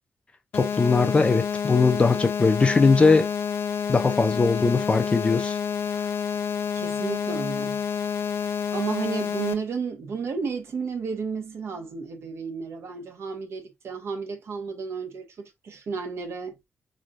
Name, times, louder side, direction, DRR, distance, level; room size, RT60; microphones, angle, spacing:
sound 1, 0.5-9.5, left 7 dB, 60° left, 0.7 m, -28 dB
voice 1, 0.5-3.3 3.9-5.6, left 4 dB, 20° left, 0.5 m, -20 dB
voice 2, 6.7-7.8 8.7-16.6, right 5 dB, 55° right, 1.1 m, -32 dB
3.9 x 3.2 x 2.5 m
wide cardioid pair, 175°, 5 cm